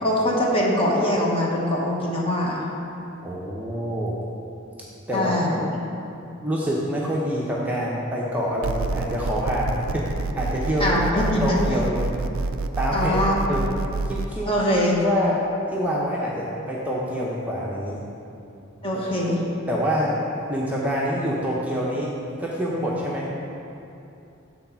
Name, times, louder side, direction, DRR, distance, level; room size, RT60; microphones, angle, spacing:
voice 1, 0.0-2.6 5.1-5.6 10.8-11.6 12.9-13.4 14.5-15.0 18.8-19.4, left 1 dB, 25° left, -3 dB, 1.0 m, -22 dB
voice 2, 3.2-4.2 5.1-5.3 6.4-10.1 10.3-10.9 11.1-12.0 12.8-13.2 13.5-13.7 14.1-14.5 15.0-18.0 18.9-19.0 19.7-20.2 20.5-22.1 22.4-23.3, equal, 10° right, -5 dB, 0.6 m, -26 dB
sound 1, 8.6-14.3, right 3 dB, 85° right, 0.4 m, -28 dB
8.3 x 4.0 x 5.6 m, 2.7 s
head